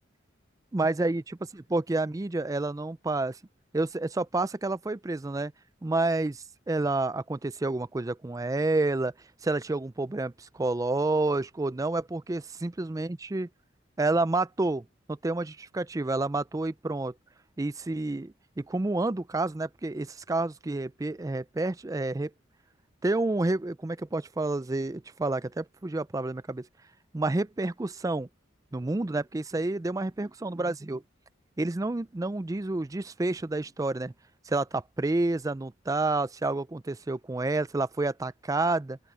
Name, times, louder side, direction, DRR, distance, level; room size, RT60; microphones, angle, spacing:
voice 1, 0.7-1.2 1.5-3.4 3.7-5.5 5.8-9.1 9.4-13.5 14.0-17.1 17.6-22.3 23.0-26.7 27.1-28.3 28.7-31.0 31.6-34.1 34.5-39.0, right 2 dB, 15° right, 0.4 m, -29 dB
open air
head